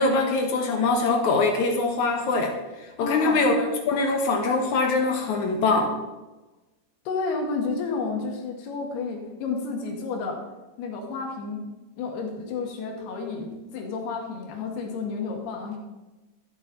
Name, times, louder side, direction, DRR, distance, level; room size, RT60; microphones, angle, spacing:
voice 1, 0.0-2.5 3.0-5.9, left 3 dB, 65° left, 3 dB, 2.0 m, -23 dB
voice 2, 3.0-3.4 7.1-10.4 10.8-11.7 12.0-15.8, left 4 dB, 85° left, 1 dB, 3.6 m, -31 dB
13.0 x 9.0 x 3.9 m, 1.1 s
omnidirectional pair, 4.5 m